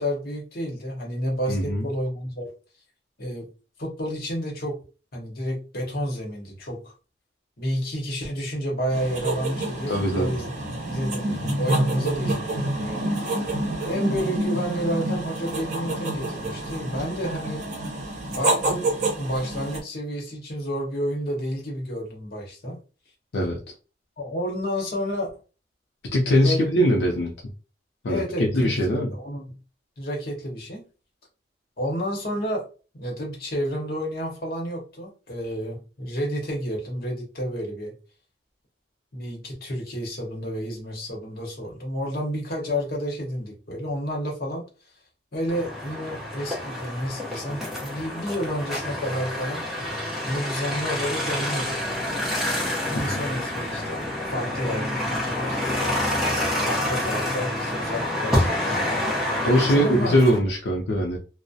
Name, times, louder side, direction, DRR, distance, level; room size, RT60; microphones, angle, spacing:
voice 1, 0.0-2.5 3.2-3.5 3.8-4.8 5.1-6.9 7.6-13.3 13.9-17.6 18.3-18.9 19.2-22.8 24.2-25.3 26.4-26.8 28.1-29.4 30.0-30.8 31.8-32.7 32.9-37.9 39.1-44.7 45.3-49.6 50.2-51.8 52.8-55.6 56.6-60.2, equal, 60° left, -1 dB, 0.9 m, -30 dB
voice 2, 1.5-1.9 9.9-10.4 11.3-11.5 23.3-23.6 26.1-27.3 28.0-29.1 53.0-53.2 59.4-61.2, equal, 85° left, -2 dB, 0.5 m, -22 dB
sound 1, 8.9-19.8, right 2 dB, 45° right, 0.6 m, -28 dB
sound 2, 45.5-60.4, left 1 dB, ahead, 0.6 m, -28 dB
2.3 x 2.0 x 2.6 m, 0.34 s
head